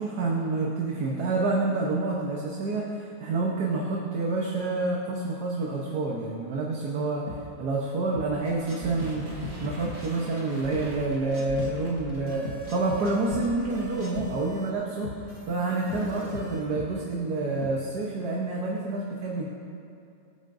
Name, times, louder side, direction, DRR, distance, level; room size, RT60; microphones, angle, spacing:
voice 1, 0.0-7.2 7.6-9.2 9.6-15.1 15.5-19.5, right 3 dB, 90° right, -2 dB, 1.7 m, -28 dB
sound 1, 7.3-7.4 8.1-8.3 9.0-9.1 9.4-10.0 10.7-10.9 11.6-11.7 12.4-12.6 12.9-13.0 13.3-13.4 14.2-14.3 15.0-15.2 15.9-16.0 16.3-16.5 16.8-16.9 17.6-17.7, left 4 dB, 40° left, 1.0 m, -36 dB
sound 2, 8.4-14.2, equal, 30° right, 2.6 m, -41 dB
sound 3, 12.3-13.4 13.7-14.7 15.3-16.6, right 1 dB, 10° right, 3.0 m, -41 dB
24.5 x 9.6 x 2.7 m, 2.5 s
omnidirectional pair, 1.7 m